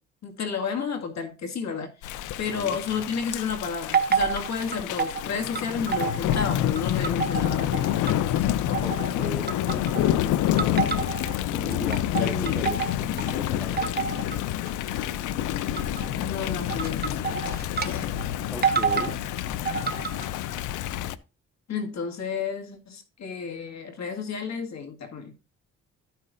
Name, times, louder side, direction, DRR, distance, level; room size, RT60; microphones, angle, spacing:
voice 1, 0.2-9.3 12.2-12.6 16.2-17.3 17.8-18.2 21.7-25.3, left 6 dB, 60° left, 1.9 m, -32 dB
Thunder / Rain, 2.0-21.2, left 12 dB, 90° left, 0.6 m, -28 dB
voice 2, 2.5-2.8 8.8-10.8 11.5-13.8 18.5-19.2, equal, ahead, 0.7 m, -38 dB
sound 1, 3.9-5.2 5.6-6.4 6.8-8.4 8.7-9.1 9.5-10.2 10.6-11.4 11.7-13.3 13.8-14.4 14.7-15.0 15.8-16.1 16.7-17.9 18.2-18.3 18.6-19.1 19.7-20.3, right 6 dB, 30° right, 1.1 m, -28 dB
13.5 x 5.8 x 2.5 m
cardioid pair, 90°, 30 cm